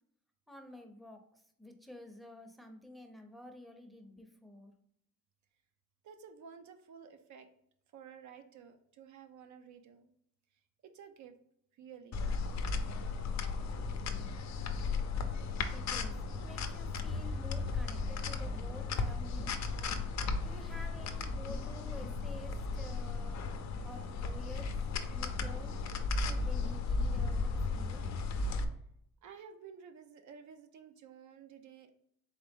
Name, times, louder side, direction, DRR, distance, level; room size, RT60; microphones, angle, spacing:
voice 1, 0.5-4.7 15.7-19.6 20.4-23.4 23.8-24.7 25.1-25.8 26.2-28.1, left 1 dB, ahead, 5 dB, 0.7 m, -51 dB
voice 2, 6.0-7.5 7.9-10.1 10.8-11.3 11.7-12.2 13.2-13.4 29.2-32.0, right 7 dB, 70° right, 6 dB, 0.6 m, -53 dB
sound 1, 12.1-28.6, left 4 dB, 65° left, 0.6 m, -35 dB
4.0 x 3.3 x 3.5 m, 0.71 s
cardioid pair, 90°, 30 cm